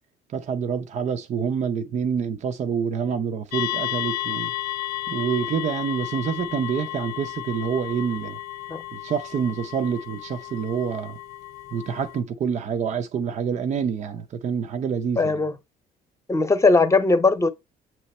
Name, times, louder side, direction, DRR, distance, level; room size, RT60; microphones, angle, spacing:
voice 1, 0.3-4.5 5.1-8.4 8.9-11.2 11.7-15.4, right 7 dB, 45° right, 0.6 m, -27 dB
sound 1, 3.5-12.2, left 14 dB, 70° left, 0.6 m, -33 dB
voice 2, 15.2-15.5 16.3-17.5, left 3 dB, 15° left, 0.9 m, -19 dB
7.4 x 3.1 x 4.2 m
cardioid pair, 110°, 17 cm